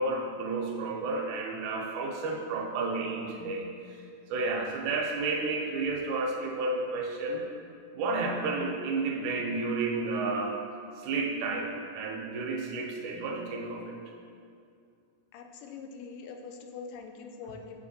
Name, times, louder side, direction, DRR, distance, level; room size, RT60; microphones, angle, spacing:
voice 1, 0.0-4.0 4.3-7.5 7.9-10.6 11.0-14.0, right 3 dB, 75° right, 1 dB, 1.9 m, -31 dB
voice 2, 15.3-17.8, left 5 dB, 90° left, 4 dB, 2.2 m, -43 dB
7.4 x 5.0 x 2.7 m, 2.3 s
omnidirectional pair, 3.7 m